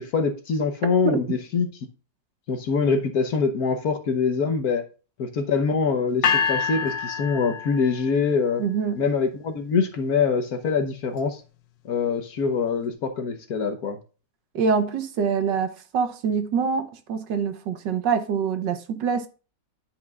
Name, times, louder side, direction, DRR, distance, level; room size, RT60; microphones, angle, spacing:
voice 1, 0.0-1.7 2.5-4.8 5.2-8.6 9.0-11.4 11.8-14.0, left 5 dB, 60° left, 1.4 m, -24 dB
sound 1, 6.2-8.3, left 6 dB, 80° left, 1.4 m, -26 dB
voice 2, 8.6-9.0 14.5-19.3, right 6 dB, 75° right, 1.6 m, -25 dB
11.0 x 5.3 x 2.3 m
omnidirectional pair, 2.0 m